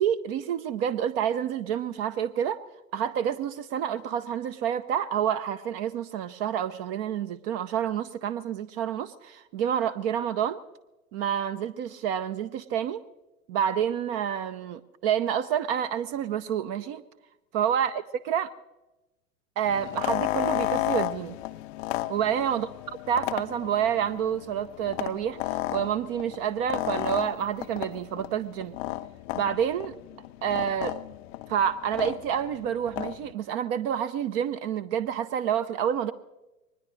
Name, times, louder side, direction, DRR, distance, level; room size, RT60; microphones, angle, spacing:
voice 1, 0.0-2.6 2.9-10.6 11.1-13.0 13.5-17.0 17.5-18.5 19.6-21.4 22.1-22.7 23.1-28.8 29.3-29.9 30.4-31.0 31.5-36.1, right 9 dB, 40° right, 12 dB, 0.7 m, -28 dB
sound 1, 19.7-33.3, left 16 dB, 45° left, 0.6 m, -33 dB
22.5 x 20.0 x 3.2 m, 1.0 s
figure-of-eight pair, 90°, 45 cm